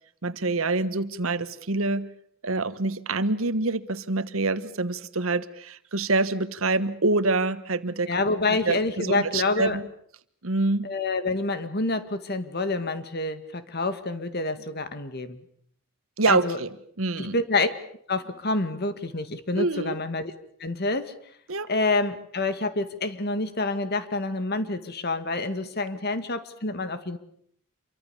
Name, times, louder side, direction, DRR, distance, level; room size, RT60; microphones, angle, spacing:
voice 1, 0.2-2.1 2.4-8.1 8.5-9.8 10.4-10.9 16.2-16.7 17.0-17.4 19.5-20.0 21.5-21.7, right 3 dB, 85° right, 13 dB, 1.4 m, -26 dB
voice 2, 8.1-9.8 10.8-15.4 16.3-16.6 17.2-17.7 18.1-20.3 20.6-21.1 21.7-27.2, left 3 dB, 50° left, 11 dB, 2.0 m, -27 dB
27.0 x 24.0 x 7.0 m, 0.64 s
head